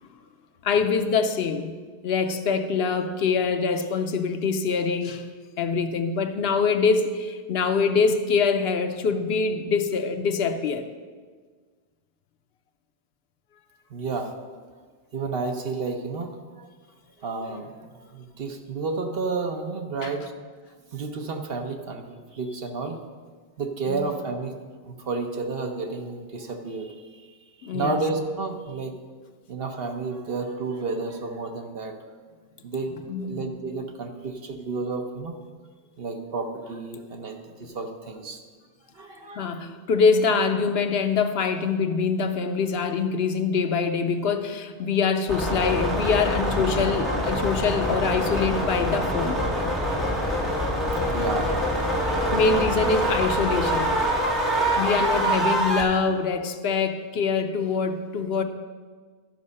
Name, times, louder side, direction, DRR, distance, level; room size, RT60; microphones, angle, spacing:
voice 1, 0.6-1.7 2.0-5.3 5.6-10.8 20.0-20.1 23.9-24.1 27.6-28.0 33.1-33.4 39.3-49.4 52.1-53.9 54.8-58.4, left 5 dB, 80° left, 8 dB, 0.9 m, -24 dB
voice 2, 13.9-14.3 15.1-16.7 17.2-20.3 20.9-23.0 23.6-24.5 24.8-28.9 29.5-32.0 32.6-35.3 36.0-38.4 38.9-39.7 50.5-50.7 51.0-51.5 52.0-52.2, right 4 dB, 70° right, 4 dB, 1.2 m, -31 dB
sound 1, 45.3-55.8, equal, ahead, 1.8 m, -25 dB
12.5 x 5.4 x 5.3 m, 1.5 s
omnidirectional pair, 1.0 m